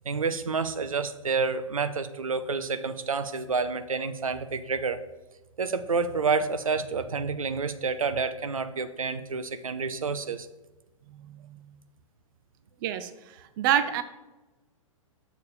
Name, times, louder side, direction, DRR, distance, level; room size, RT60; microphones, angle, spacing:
voice 1, 0.1-5.0 5.6-10.5, right 4 dB, 80° right, 12 dB, 0.6 m, -29 dB
voice 2, 13.6-14.0, right 10 dB, 40° right, 11 dB, 0.6 m, -25 dB
6.9 x 4.1 x 6.6 m, 1.1 s
figure-of-eight pair, 115°, 17 cm